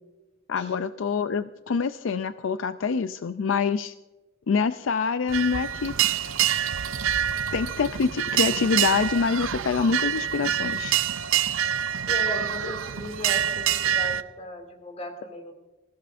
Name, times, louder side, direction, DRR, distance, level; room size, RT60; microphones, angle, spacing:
voice 1, 0.5-3.9 4.5-5.9 7.5-11.0, left 5 dB, 70° left, 12 dB, 0.4 m, -25 dB
sound 1, 5.3-14.2, right 10 dB, 85° right, 0.6 m, -26 dB
voice 2, 12.1-15.5, left 1 dB, 35° left, 4 dB, 2.6 m, -36 dB
20.5 x 15.5 x 2.6 m, 1.2 s
head